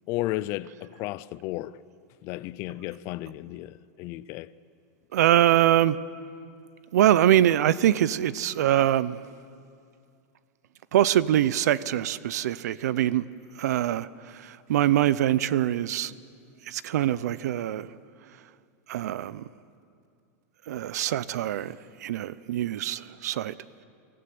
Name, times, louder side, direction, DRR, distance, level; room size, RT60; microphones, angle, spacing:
voice 1, 0.1-1.8 2.2-4.5, left 16 dB, 30° left, 0.4 m, -33 dB
voice 2, 5.1-6.0 6.9-9.2 10.9-13.3 13.6-16.1 16.7-17.9 18.9-19.4 20.7-21.8 22.0-23.5, right 12 dB, 85° right, 0.6 m, -23 dB
25.5 x 15.0 x 7.9 m
supercardioid pair, 170°, 9 cm